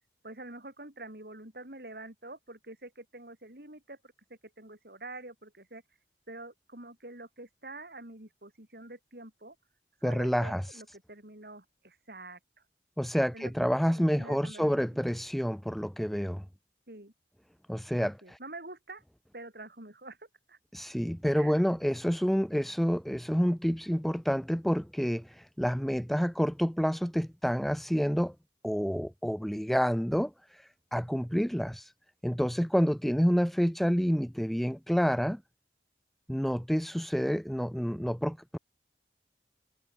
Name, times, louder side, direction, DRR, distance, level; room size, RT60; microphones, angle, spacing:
voice 1, 0.2-5.8 6.3-9.6 10.0-12.4 13.3-15.0 16.9-17.1 18.0-19.0 19.3-20.6 21.3-21.6, right 2 dB, 60° right, 4.5 m, -47 dB
voice 2, 10.0-10.8 13.0-16.4 17.7-18.4 20.7-28.3 28.6-31.9 32.2-35.4 36.3-38.6, equal, ahead, 0.4 m, -28 dB
head